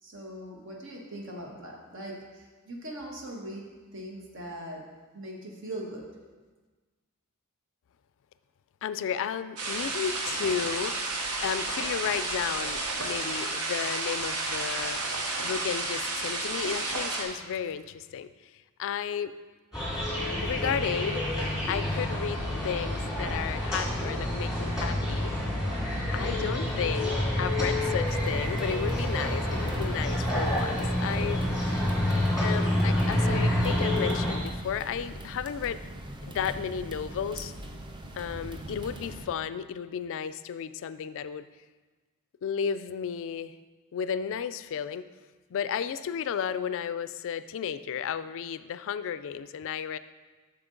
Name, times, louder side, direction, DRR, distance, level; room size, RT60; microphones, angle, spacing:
voice 1, 0.0-3.7 3.9-4.8 5.1-6.1, right 1 dB, 60° right, -1 dB, 1.4 m, -40 dB
voice 2, 8.8-11.0 11.4-15.0 15.4-18.3 18.8-19.3 20.4-21.3 21.7-25.3 26.1-31.4 32.4-35.8 36.2-37.5 38.1-41.4 42.4-43.5 43.9-45.1 45.5-50.0, left 8 dB, 60° left, 14 dB, 0.3 m, -33 dB
sound 1, 9.6-17.2, right 2 dB, 80° right, 1.1 m, -31 dB
sound 2, 19.7-34.4, left 1 dB, 5° right, 2.4 m, -28 dB
sound 3, 28.1-39.3, right 1 dB, 20° right, 0.5 m, -41 dB
8.0 x 6.4 x 3.8 m, 1.3 s
head